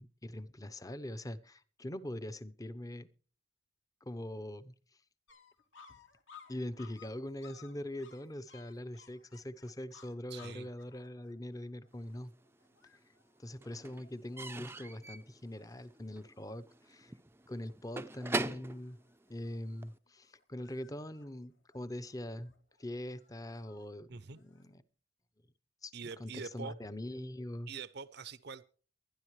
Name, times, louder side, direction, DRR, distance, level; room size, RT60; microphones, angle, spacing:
voice 1, 0.0-3.1 4.0-4.7 6.5-12.3 13.4-17.1 17.5-19.0 19.3-22.5 22.8-24.8 25.8-25.9 26.2-27.7, left 1 dB, 15° left, 0.8 m, -42 dB
sound 1, 5.3-14.7 15.2-15.3 15.5-16.2 16.4-17.1 17.6-17.9 18.2-24.7, left 6 dB, 70° left, 2.9 m, -61 dB
voice 2, 10.3-10.7 24.1-24.4 25.9-26.8 27.7-28.6, right 5 dB, 55° right, 0.7 m, -44 dB
Slam / Squeak / Wood, 12.1-12.9 13.2-20.0, right 2 dB, 10° right, 0.5 m, -42 dB
23.0 x 10.5 x 3.2 m
head